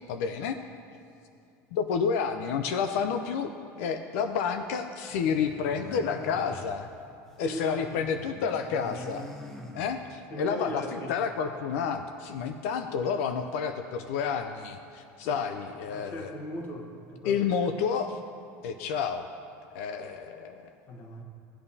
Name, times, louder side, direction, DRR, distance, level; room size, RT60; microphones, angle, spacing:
voice 1, 0.1-0.6 1.7-3.5 3.8-6.9 7.4-9.3 9.7-16.3 17.2-18.2 18.6-19.3 19.7-20.7, left 6 dB, 80° left, 7 dB, 0.5 m, -30 dB
sound 1, 5.1-7.5 7.8-10.4, left 1 dB, 5° left, 0.7 m, -46 dB
voice 2, 5.7-6.2 7.4-8.3 9.0-9.3 10.3-11.1 15.2-15.4 15.9-17.5 20.9-21.2, equal, 30° left, 3 dB, 1.3 m, -39 dB
17.0 x 8.8 x 2.8 m, 2.5 s
cardioid pair, 155°, 7 cm